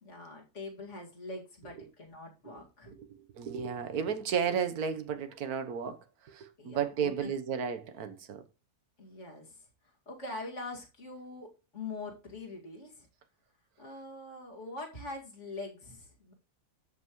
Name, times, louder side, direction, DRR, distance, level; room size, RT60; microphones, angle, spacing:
voice 1, 0.0-2.9 6.6-7.3 9.0-9.7 10.1-13.1 13.8-16.3, left 2 dB, 50° left, 2.5 m, -43 dB
voice 2, 3.4-6.0 6.3-8.4, right 7 dB, 85° right, 1.5 m, -33 dB
13.0 x 5.5 x 3.0 m
omnidirectional pair, 1.5 m